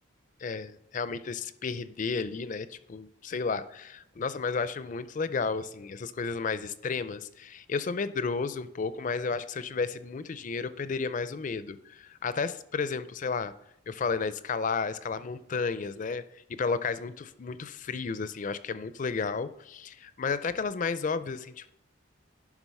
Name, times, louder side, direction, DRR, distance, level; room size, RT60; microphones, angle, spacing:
voice 1, 0.4-13.5 13.9-21.7, left 4 dB, 40° left, 13 dB, 0.4 m, -32 dB
11.0 x 3.7 x 5.4 m, 0.81 s
head